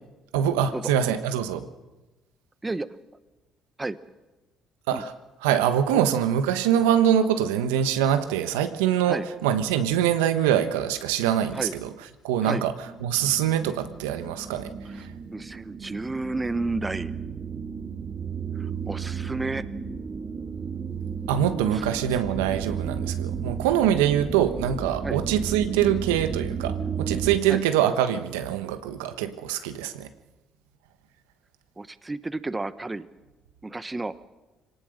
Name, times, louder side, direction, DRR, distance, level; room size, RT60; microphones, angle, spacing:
voice 1, 0.3-1.7 4.9-5.1 5.4-11.9 12.2-12.7 13.0-15.1 21.3-30.1, right 10 dB, 90° right, 10 dB, 1.2 m, -24 dB
sound 1, 12.9-27.4, right 6 dB, 40° right, 2.2 m, -33 dB
voice 2, 14.8-17.1 18.6-19.7 21.7-21.8 25.0-25.2 27.5-27.6 31.8-33.1 33.6-34.1, right 2 dB, 20° right, 13 dB, 1.0 m, -31 dB
24.0 x 18.5 x 6.6 m, 1.1 s
supercardioid pair, 65°, 0 cm